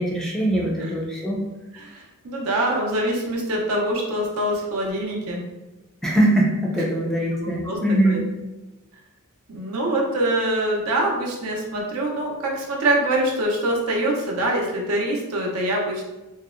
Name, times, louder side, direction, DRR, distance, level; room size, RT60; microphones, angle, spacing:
voice 1, 0.0-1.4 6.0-8.2, right 1 dB, ahead, -4 dB, 0.4 m, -22 dB
voice 2, 1.7-5.4 6.8-6.9 7.3-7.8 8.1-8.2 9.5-16.0, right 1 dB, 70° right, -1 dB, 0.6 m, -24 dB
2.7 x 2.0 x 2.4 m, 1.1 s
head